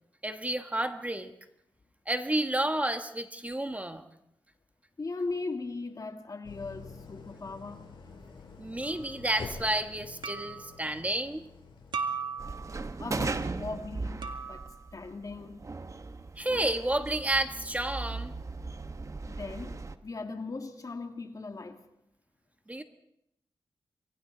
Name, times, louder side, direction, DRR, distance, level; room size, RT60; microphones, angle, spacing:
voice 1, 0.2-1.3 2.1-4.0 8.6-11.5 16.4-18.3 22.7-22.8, right 1 dB, 15° right, 1.4 m, -31 dB
voice 2, 5.0-7.9 13.0-14.2 14.5-15.6 19.3-21.8, left 3 dB, 45° left, 2.0 m, -38 dB
Idling, 6.4-13.5, left 4 dB, 65° left, 6.3 m, -48 dB
sound 1, 8.8-9.1 10.2-10.8 11.9-12.8 14.2-14.9, right 5 dB, 65° right, 2.0 m, -37 dB
sound 2, 12.4-20.0, right 3 dB, 35° right, 1.0 m, -38 dB
28.5 x 23.0 x 4.0 m
cardioid pair, 70°, 9 cm